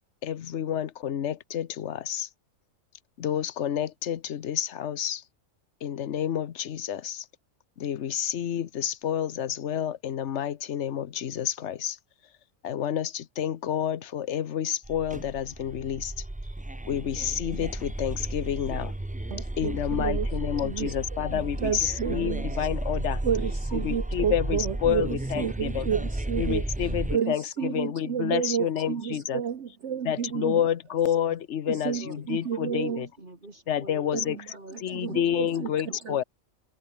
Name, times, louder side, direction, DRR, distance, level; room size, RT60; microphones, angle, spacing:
voice 1, 0.2-2.3 3.2-5.2 5.8-7.2 7.8-12.0 12.6-16.1 16.9-18.9 19.6-23.2 23.8-25.8 26.4-29.4 30.1-33.1 33.7-34.4 34.8-36.2, left 10 dB, 60° left, 1.1 m, -29 dB
sound 1, 14.8-27.2, right 1 dB, 10° right, 0.5 m, -33 dB
voice 2, 19.3-22.7 23.2-30.7 31.7-33.0 34.1-36.2, right 8 dB, 60° right, 1.4 m, -31 dB
voice 3, 32.7-36.2, right 2 dB, 35° right, 3.2 m, -46 dB
omnidirectional pair, 1.4 m